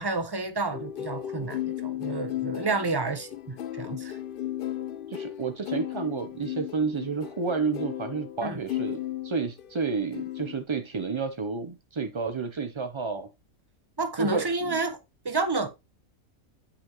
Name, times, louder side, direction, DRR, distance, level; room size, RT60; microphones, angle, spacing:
voice 1, 0.0-4.2 8.4-8.6 14.0-15.0 15.2-15.7, right 3 dB, 25° right, 0.7 m, -30 dB
sound 1, 0.7-9.8 10.1-10.6, left 12 dB, 70° left, 0.5 m, -35 dB
voice 2, 5.1-13.3 14.2-14.8, right 4 dB, 50° right, 0.3 m, -31 dB
8.5 x 5.5 x 2.9 m
omnidirectional pair, 1.5 m